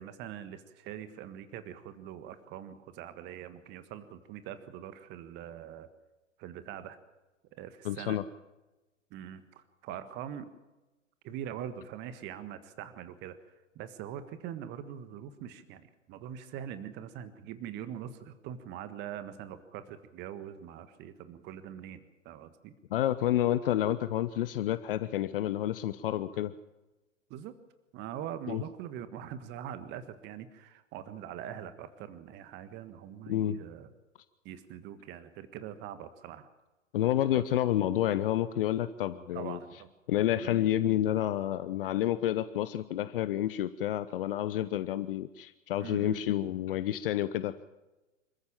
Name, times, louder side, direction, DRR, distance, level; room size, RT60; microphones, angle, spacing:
voice 1, 0.0-5.9 6.4-7.0 7.5-8.2 9.1-10.5 11.2-13.4 13.7-22.7 26.3-26.4 27.3-27.5 27.9-33.9 34.4-36.5 37.3-37.4 39.3-39.9 40.4-40.6 45.8-46.2, right 10 dB, 30° right, 12 dB, 1.5 m, -43 dB
voice 2, 7.8-8.2 22.9-26.5 28.5-28.6 33.3-33.6 36.9-39.6 40.1-47.5, left 12 dB, 45° left, 14 dB, 1.0 m, -29 dB
26.5 x 14.5 x 7.5 m, 1.1 s
figure-of-eight pair, 110°, 38 cm